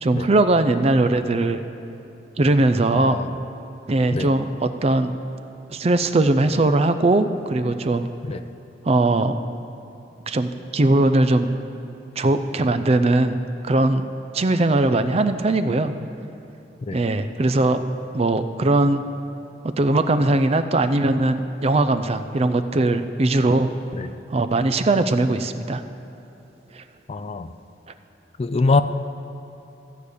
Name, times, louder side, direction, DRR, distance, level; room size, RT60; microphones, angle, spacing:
voice 1, 0.0-1.6 2.4-3.2 3.9-5.1 5.7-8.1 8.9-9.4 10.3-11.5 12.2-13.4 13.6-14.1 14.3-15.9 16.9-17.8 18.1-19.0 19.6-23.7 24.3-25.8 26.8-26.9, right 2 dB, 35° right, 10 dB, 0.5 m, -20 dB
voice 2, 2.9-3.3 4.1-4.3 8.3-8.4 16.9-17.0 23.9-24.1 27.1-27.5 28.4-28.8, left 3 dB, 35° left, 11 dB, 0.3 m, -23 dB
14.5 x 5.0 x 8.2 m, 2.9 s
head